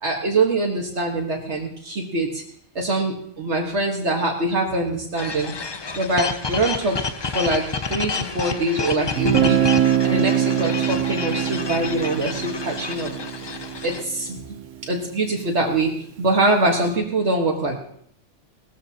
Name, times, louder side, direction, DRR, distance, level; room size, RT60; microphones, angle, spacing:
voice 1, 0.0-2.4 2.8-5.5 5.9-7.0 7.3-13.1 13.8-14.4 14.8-17.8, right 2 dB, 65° right, 0 dB, 1.8 m, -23 dB
sound 1, 5.2-14.0, left 4 dB, 40° left, 0.4 m, -30 dB
Guitar, 9.2-14.9, right 10 dB, 85° right, 1.1 m, -23 dB
18.5 x 13.5 x 2.8 m, 0.66 s
omnidirectional pair, 1.3 m